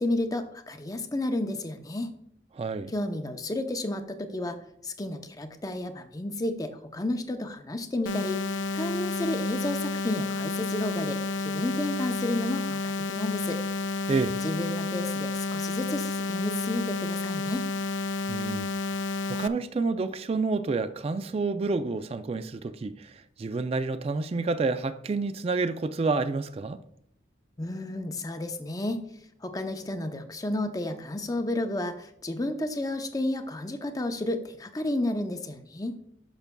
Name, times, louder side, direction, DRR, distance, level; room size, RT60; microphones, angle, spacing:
voice 1, 0.0-2.1 2.9-4.6 4.8-8.4 8.7-13.6 14.4-17.6 27.6-29.0 29.4-36.0, left 1 dB, 20° left, 0.6 m, -31 dB
voice 2, 2.5-2.9 14.1-14.4 18.3-18.7 19.3-26.8, right 3 dB, 30° right, 0.3 m, -29 dB
sound 1, 8.1-19.5, left 3 dB, 80° left, 0.4 m, -31 dB
12.0 x 5.9 x 2.2 m
head